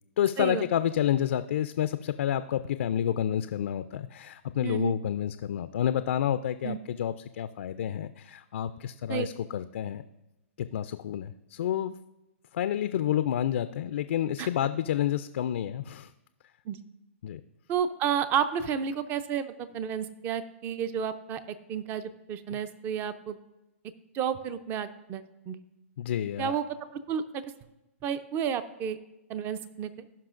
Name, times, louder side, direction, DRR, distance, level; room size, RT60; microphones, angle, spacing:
voice 1, 0.2-10.0 10.6-11.9 12.5-16.1 17.2-17.4 26.0-26.6, left 10 dB, 70° left, 11 dB, 0.4 m, -29 dB
voice 2, 4.6-4.9 6.6-6.8 9.1-9.3 14.4-14.5 16.7-16.8 17.7-23.4 24.1-25.6 26.4-26.7 27.1-27.4 28.0-29.0 29.3-29.9, right 8 dB, 25° right, 13 dB, 0.5 m, -31 dB
16.5 x 5.6 x 2.5 m, 0.98 s
hypercardioid pair, 135°, 7 cm